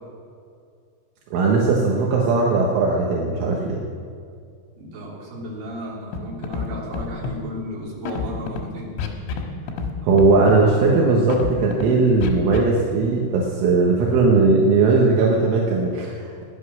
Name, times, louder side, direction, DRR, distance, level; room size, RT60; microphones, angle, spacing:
voice 1, 1.3-3.8 10.0-16.4, right 3 dB, 75° right, -2 dB, 3.8 m, -18 dB
voice 2, 4.8-8.9, equal, 45° right, -5 dB, 4.9 m, -34 dB
Scratching (performance technique), 6.1-6.2 6.4-6.7 6.9-7.4 8.0-8.6 9.0-9.4 9.7-9.9 10.2-10.6 11.3-11.9 12.2-12.6, left 5 dB, 85° left, 4.0 m, -27 dB
17.5 x 11.0 x 6.4 m, 2.2 s
omnidirectional pair, 5.8 m